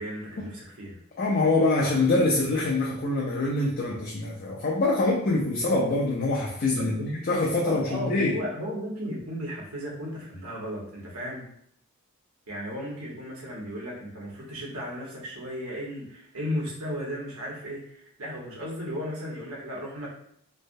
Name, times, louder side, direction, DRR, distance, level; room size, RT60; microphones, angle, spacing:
voice 1, 0.0-1.0 6.8-7.1 7.6-11.5 12.5-20.1, equal, 70° right, -4 dB, 1.0 m, -35 dB
voice 2, 1.2-8.3, left 2 dB, 40° left, -3 dB, 0.4 m, -25 dB
3.2 x 2.1 x 2.5 m, 0.66 s
head